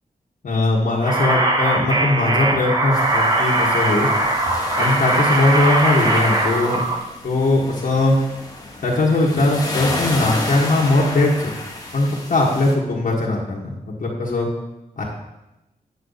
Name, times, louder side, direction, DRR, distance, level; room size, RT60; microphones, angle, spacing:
voice 1, 0.4-4.1 4.8-6.8 7.2-8.1 8.8-11.3 11.9-13.7 14.0-14.5 15.0-15.1, left 2 dB, 65° left, -5 dB, 1.6 m, -19 dB
sound 1, 1.0-7.0, right 2 dB, 25° right, 1.2 m, -20 dB
sound 2, 2.9-12.7, left 2 dB, 25° left, 1.4 m, -31 dB
9.7 x 7.6 x 4.1 m, 0.94 s
wide cardioid pair, 170°, 15 cm